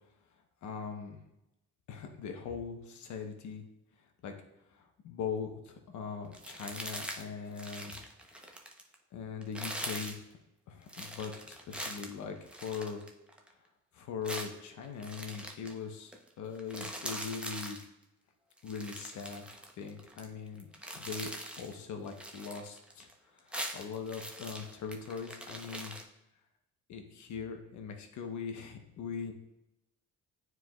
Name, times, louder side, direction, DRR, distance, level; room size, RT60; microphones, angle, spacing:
voice 1, 0.6-1.2 1.9-3.6 4.2-4.3 4.7-7.9 8.3-8.5 9.1-10.2 10.7-13.0 13.9-17.8 18.6-19.4 19.8-20.7 20.9-23.1 23.3-25.9 26.9-29.3, left 6 dB, 70° left, 4 dB, 1.0 m, -41 dB
sound 1, 6.3-7.2 7.5-8.9 9.4-10.2 10.9-13.5 14.2-15.7 16.1-16.3 16.5-17.8 18.6-20.2 20.6-21.7 22.1-23.1 23.4-26.0, right 1 dB, 5° right, 0.7 m, -42 dB
9.2 x 4.7 x 2.3 m, 0.89 s
cardioid pair, 90°, 30 cm